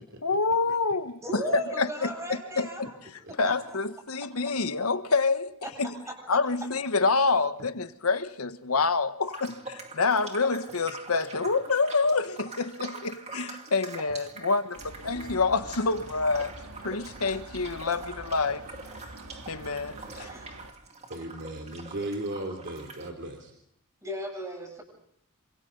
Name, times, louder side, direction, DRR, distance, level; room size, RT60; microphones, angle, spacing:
voice 1, 0.2-2.7 3.4-5.9 6.3-16.5 16.8-18.7 19.5-20.3, left 4 dB, 75° left, 1.4 m, -27 dB
voice 2, 1.2-2.9 3.3-3.6 4.2-4.3 5.6-6.2 20.1-20.5 21.2-21.3 24.0-24.8, right 1 dB, 15° right, 7.7 m, -36 dB
sound 1, 9.3-23.1, right 3 dB, 30° right, 2.4 m, -44 dB
sound 2, 14.8-20.7, right 2 dB, 75° right, 2.5 m, -45 dB
voice 3, 21.1-23.5, right 1 dB, 55° right, 3.2 m, -36 dB
28.0 x 26.0 x 4.0 m
head